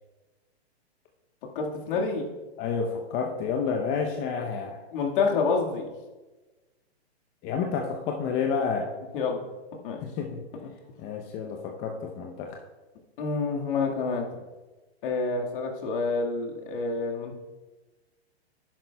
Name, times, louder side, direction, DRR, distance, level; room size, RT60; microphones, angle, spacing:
voice 1, 1.6-2.3 4.9-5.9 9.1-9.4 9.8-10.0 13.2-14.3 15.0-17.4, left 4 dB, 55° left, 0 dB, 1.9 m, -28 dB
voice 2, 2.6-4.8 7.4-8.9 10.0-10.4 11.0-12.6, left 5 dB, 25° left, 2 dB, 0.8 m, -30 dB
11.5 x 10.5 x 2.3 m, 1.2 s
hypercardioid pair, 135°, 33 cm